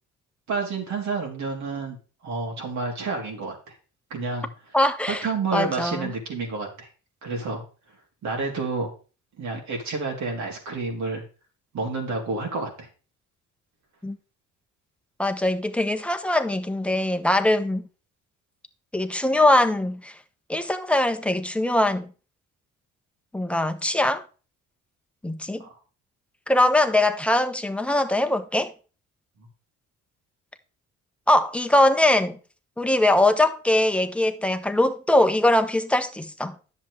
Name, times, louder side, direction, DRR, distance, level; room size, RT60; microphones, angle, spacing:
voice 1, 0.5-2.0 2.2-3.6 4.1-4.5 5.1-6.9 7.2-7.6 8.2-8.9 9.4-11.2 11.7-12.9 25.6-25.7, right 4 dB, 70° right, 3.5 m, -29 dB
voice 2, 4.7-5.2 5.5-6.1 14.0-14.2 15.2-17.8 18.9-20.1 20.5-22.1 23.3-24.2 25.2-25.6 26.5-28.7 31.3-32.4 32.8-36.5, left 1 dB, 5° left, 1.0 m, -22 dB
10.5 x 7.3 x 3.4 m
cardioid pair, 90°, 30 cm